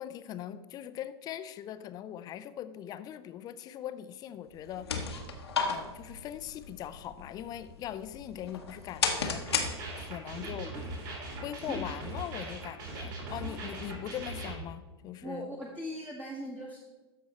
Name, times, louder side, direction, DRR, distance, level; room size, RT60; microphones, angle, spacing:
voice 1, 0.0-4.9 5.7-9.4 10.0-10.7 11.4-15.5, left 11 dB, 30° left, 13 dB, 0.5 m, -41 dB
sound 1, 4.5-10.3, left 5 dB, 75° left, 1.2 m, -35 dB
sound 2, 9.5-14.5, right 2 dB, 50° right, 3.2 m, -40 dB
voice 2, 10.4-10.9 11.7-11.8 13.2-13.6 15.2-16.8, equal, 10° right, -2 dB, 1.1 m, -41 dB
13.0 x 4.7 x 4.2 m, 1.2 s
figure-of-eight pair, 95°, 14 cm